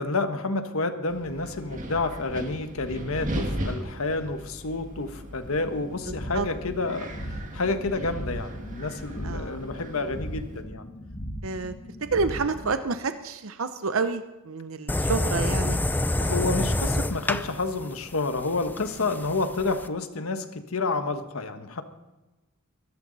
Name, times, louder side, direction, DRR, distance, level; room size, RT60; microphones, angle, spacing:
voice 1, 0.0-10.8 16.2-21.8, left 3 dB, 80° left, 8 dB, 1.4 m, -29 dB
Wind, 1.1-10.6, right 1 dB, 35° right, 2.0 m, -37 dB
sound 1, 5.4-12.8, equal, 40° left, 1.9 m, -38 dB
voice 2, 6.1-6.5 9.2-9.6 11.4-11.7 12.1-15.8, right 4 dB, 70° right, 10 dB, 0.8 m, -29 dB
sound 2, 14.9-19.9, left 1 dB, 10° left, 0.5 m, -27 dB
22.5 x 13.0 x 4.1 m, 1.1 s
head